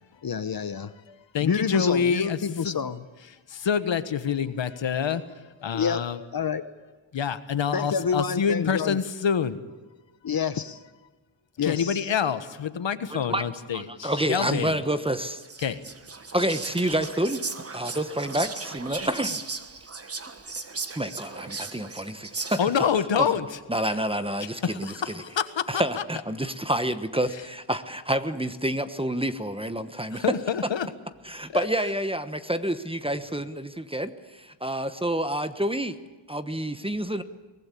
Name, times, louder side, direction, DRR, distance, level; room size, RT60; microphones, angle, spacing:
voice 1, 0.2-0.9 1.4-3.0 5.7-6.6 7.7-9.0 10.2-10.8 11.6-12.1, left 6 dB, 45° left, 12 dB, 1.0 m, -28 dB
voice 2, 1.3-2.8 3.6-5.2 5.6-6.2 7.1-9.6 11.6-14.8 15.6-15.8 22.6-23.6 24.4-25.5 25.7-26.0 27.3-27.4 30.1-30.9 31.5-31.7, left 7 dB, 65° left, 12 dB, 1.4 m, -27 dB
voice 3, 13.1-13.4 13.7-15.4 16.3-17.4 17.7-19.4 20.9-22.6 23.7-24.9 25.7-30.2 31.3-36.0 36.3-37.2, right 1 dB, 10° right, 10 dB, 1.1 m, -28 dB
Whispering, 15.3-22.9, right 4 dB, 30° right, 1.4 m, -37 dB
23.0 x 18.5 x 8.4 m, 1.2 s
wide cardioid pair, 95°, 48 cm